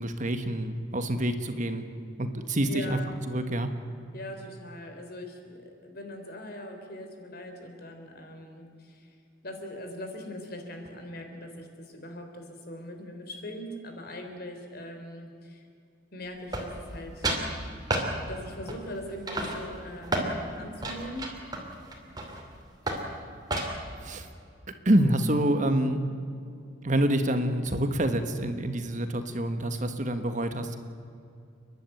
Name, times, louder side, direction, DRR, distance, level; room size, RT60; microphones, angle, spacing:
voice 1, 0.0-1.9 2.2-3.0 3.3-3.7 24.0-24.3 24.8-26.0 26.8-30.8, right 1 dB, 40° right, 8 dB, 1.4 m, -27 dB
voice 2, 2.6-3.1 4.1-9.1 9.4-15.7 16.1-17.3 18.3-21.3, left 1 dB, 55° left, 4 dB, 3.4 m, -41 dB
sound 1, 16.5-17.0 17.2-17.5 17.9-18.1 18.7-19.0 19.3-20.3 20.8-22.4 22.9-23.1 23.5-23.9, right 2 dB, 20° right, 3.0 m, -31 dB
30.0 x 11.5 x 9.1 m, 2.4 s
head